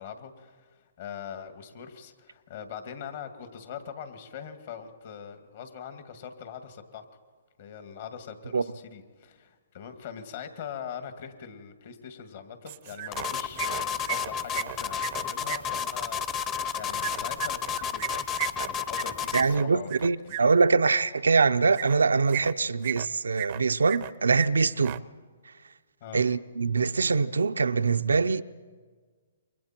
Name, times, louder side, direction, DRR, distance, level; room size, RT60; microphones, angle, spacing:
voice 1, 0.0-7.0 7.6-20.4 26.0-26.2, left 7 dB, 55° left, 2.2 m, -42 dB
sound 1, 12.7-13.3 13.6-15.6 17.0-20.4 21.7-22.0 22.3-23.1 23.3-24.1 24.4-24.5 24.8-25.0, right 16 dB, 40° right, 0.6 m, -35 dB
sound 2, 13.1-19.5, left 7 dB, 25° left, 0.8 m, -31 dB
voice 2, 19.3-25.0 26.1-28.4, right 4 dB, 85° right, 0.6 m, -23 dB
28.5 x 23.5 x 4.5 m
hypercardioid pair, 140°, 0 cm